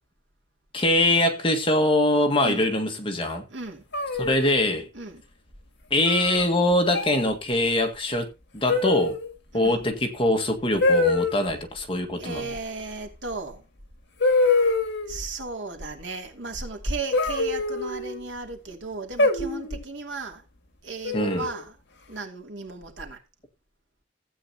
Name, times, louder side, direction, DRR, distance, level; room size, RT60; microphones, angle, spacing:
voice 1, 0.7-3.4 4.2-4.9 5.9-8.3 8.5-9.2 9.5-12.5 21.1-21.5, left 1 dB, 30° left, 1.7 m, -23 dB
voice 2, 2.4-2.7 3.5-3.8 4.9-5.2 9.5-9.8 12.2-13.6 15.1-20.4 20.8-21.8 22.1-23.2, right 3 dB, 70° right, 2.7 m, -35 dB
sound 1, 3.9-4.8 6.1-6.4 6.9-7.3 8.7-9.3 10.8-11.4 13.3-13.4 14.2-15.2 17.1-18.2 19.2-19.8 21.0-21.6, left 3 dB, 65° left, 1.9 m, -24 dB
15.0 x 8.8 x 2.9 m
head